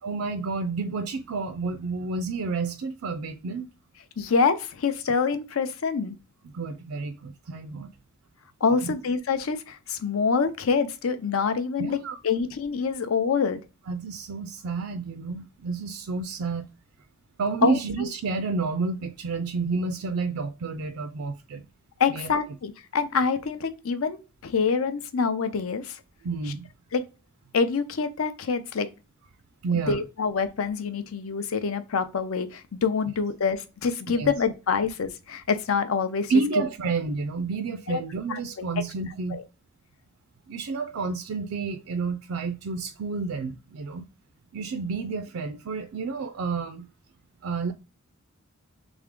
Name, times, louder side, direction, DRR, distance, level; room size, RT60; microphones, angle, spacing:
voice 1, 0.0-3.7 6.4-7.9 8.8-8.9 11.8-12.2 13.9-16.7 17.4-21.6 22.1-22.3 26.2-26.7 29.6-30.0 34.1-34.3 36.3-39.4 40.5-44.0 44.5-46.9 47.4-47.7, right 4 dB, 85° right, 0.4 m, -30 dB
voice 2, 4.2-6.2 8.6-12.0 12.2-13.6 17.6-18.1 22.0-26.0 26.9-27.0 27.5-28.9 29.9-36.6 37.9-38.0 38.3-38.6 39.3-39.4, left 5 dB, 75° left, 0.6 m, -26 dB
3.5 x 3.3 x 3.6 m
head